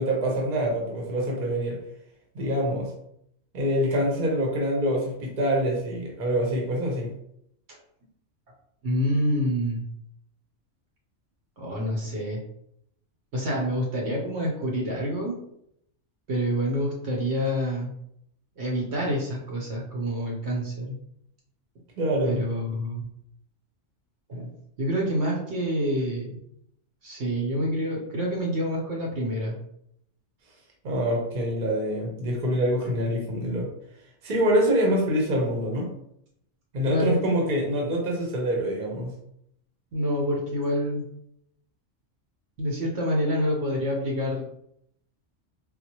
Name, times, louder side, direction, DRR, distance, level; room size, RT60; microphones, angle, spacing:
voice 1, 0.0-1.8 2.3-2.9 3.5-7.1 22.0-22.4 30.8-33.7 34.2-35.9 36.7-39.1, equal, 45° right, -1 dB, 0.9 m, -25 dB
voice 2, 8.8-9.9 11.6-12.4 13.3-15.4 16.3-17.9 18.6-21.0 22.2-23.0 24.3-26.3 27.0-29.6 36.9-37.2 39.9-41.0 42.6-44.4, equal, 65° right, -2 dB, 1.0 m, -27 dB
4.1 x 2.1 x 2.9 m, 0.73 s
omnidirectional pair, 1.3 m